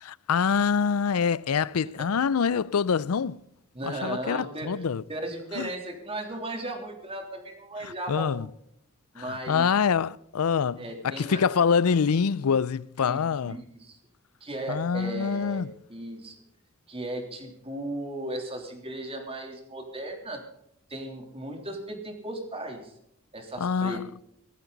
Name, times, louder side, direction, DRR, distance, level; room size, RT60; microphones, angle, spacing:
voice 1, 0.0-3.4 3.8-5.0 5.6-5.7 7.8-8.5 9.2-13.6 14.7-15.7 23.6-24.1, left 6 dB, 90° left, 0.5 m, -25 dB
voice 2, 3.7-4.7 5.1-8.5 9.1-9.7 10.8-11.4 13.0-14.0 14.4-16.4 16.9-20.4 20.9-22.9 23.3-24.0, right 1 dB, 25° right, 3.2 m, -36 dB
18.0 x 14.0 x 4.0 m
head